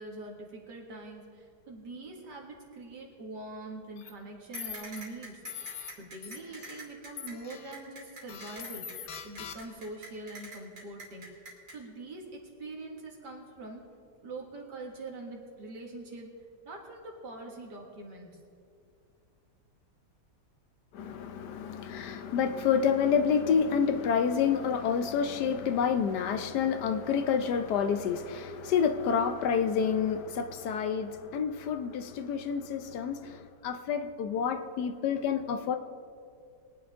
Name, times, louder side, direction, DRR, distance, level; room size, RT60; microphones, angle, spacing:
voice 1, 0.0-5.4 6.0-8.9 9.2-11.3 11.7-13.8 14.2-16.3 16.6-18.3, right 2 dB, 70° right, 0 dB, 2.4 m, -43 dB
sound 1, 4.0-4.1 4.5-5.0 5.4-5.9 6.2-6.8 7.2-7.7 8.3-9.9, left 8 dB, 55° left, 0.9 m, -42 dB
sound 2, 4.5-11.8, right 2 dB, 90° right, 3.3 m, -46 dB
voice 2, 20.9-35.8, left 7 dB, 75° left, 9 dB, 1.2 m, -28 dB
22.0 x 9.7 x 3.6 m, 2.4 s
omnidirectional pair, 1.9 m